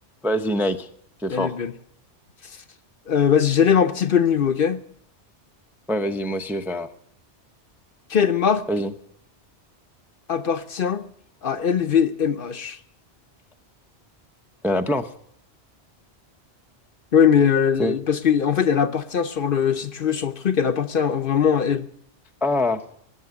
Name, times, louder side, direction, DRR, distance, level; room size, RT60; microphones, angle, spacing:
voice 1, 0.2-0.9 1.2-1.6 5.9-6.9 8.7-8.9 14.6-15.1 17.8-18.0 22.4-22.8, left 1 dB, ahead, 0.6 m, -24 dB
voice 2, 1.3-1.7 3.1-4.8 8.1-8.6 10.3-11.0 11.4-12.8 17.1-21.9, left 7 dB, 55° left, 0.9 m, -20 dB
19.5 x 7.0 x 9.5 m
omnidirectional pair, 1.2 m